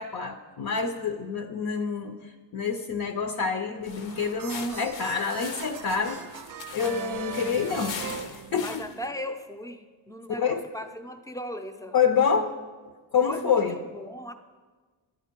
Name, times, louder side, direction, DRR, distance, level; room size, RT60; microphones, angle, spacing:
voice 1, 0.0-2.2 2.5-6.2 6.7-8.0 8.5-8.8 10.4-10.6 11.9-12.5 13.1-13.7, left 6 dB, 55° left, 6 dB, 0.6 m, -27 dB
sound 1, 3.8-9.1, left 6 dB, 80° left, 0.8 m, -41 dB
sound 2, 3.8-9.2, right 8 dB, 50° right, 0.5 m, -40 dB
voice 2, 8.6-12.0 13.2-14.3, equal, 10° left, 7 dB, 0.5 m, -38 dB
10.5 x 9.2 x 4.5 m, 1.4 s
wide cardioid pair, 130°, 44 cm